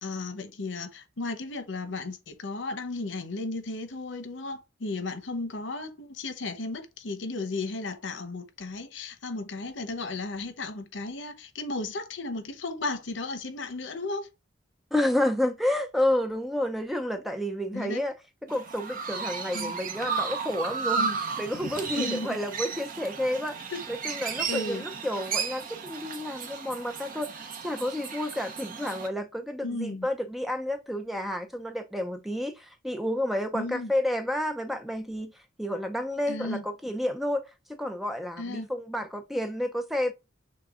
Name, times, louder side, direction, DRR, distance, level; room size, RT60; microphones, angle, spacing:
voice 1, 0.0-14.3 17.7-18.0 19.5-19.8 21.0-21.2 21.9-22.4 23.7-23.8 24.5-24.8 29.6-30.1 33.5-33.9 36.3-36.6 38.4-38.7, left 2 dB, 85° left, 0.9 m, -34 dB
voice 2, 14.9-18.2 18.4-21.1 21.4-23.6 23.9-27.3 27.6-35.3 35.6-40.1, left 1 dB, ahead, 0.6 m, -30 dB
Chirp tweet, 18.5-29.1, right 5 dB, 50° right, 0.8 m, -34 dB
6.4 x 2.3 x 3.6 m
head